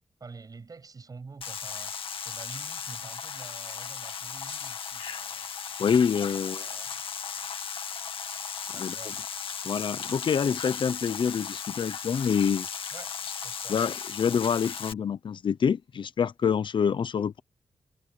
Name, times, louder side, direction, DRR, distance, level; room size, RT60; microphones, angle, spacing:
voice 1, 0.2-1.9 2.2-5.5 6.3-7.0 8.7-9.3 12.9-13.8, right 4 dB, 45° right, 7.3 m, -48 dB
sound 1, 1.4-14.9, left 7 dB, 85° left, 2.0 m, -36 dB
voice 2, 5.8-6.6 8.8-8.9 9.6-12.7 13.7-17.4, left 7 dB, 65° left, 0.7 m, -26 dB
wide cardioid pair, 115°, 9 cm